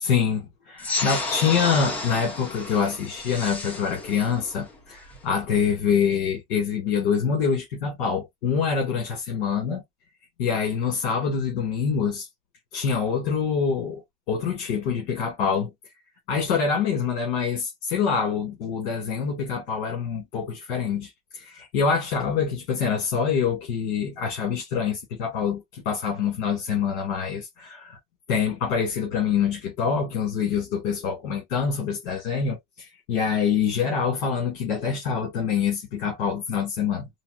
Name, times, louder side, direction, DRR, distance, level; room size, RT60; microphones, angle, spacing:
voice 1, 0.0-9.8 10.4-12.3 12.7-15.7 16.3-28.0 28.3-37.1, left 6 dB, 55° left, 1.7 m, -25 dB
sound 1, 0.8-5.8, left 2 dB, 5° left, 0.3 m, -32 dB
4.0 x 2.3 x 2.3 m
supercardioid pair, 175°, 31 cm